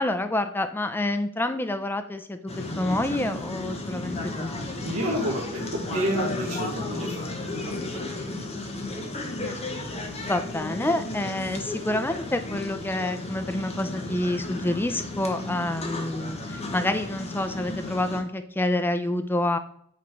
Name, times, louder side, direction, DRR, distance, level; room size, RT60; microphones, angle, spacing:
voice 1, 0.0-4.5 9.4-9.6 10.2-19.6, left 1 dB, 10° left, 8 dB, 0.4 m, -28 dB
sound 1, 2.5-18.2, left 2 dB, 30° left, 1.0 m, -34 dB
voice 2, 4.8-8.1, equal, 75° right, -5 dB, 1.2 m, -30 dB
8.4 x 3.1 x 4.5 m, 0.69 s
head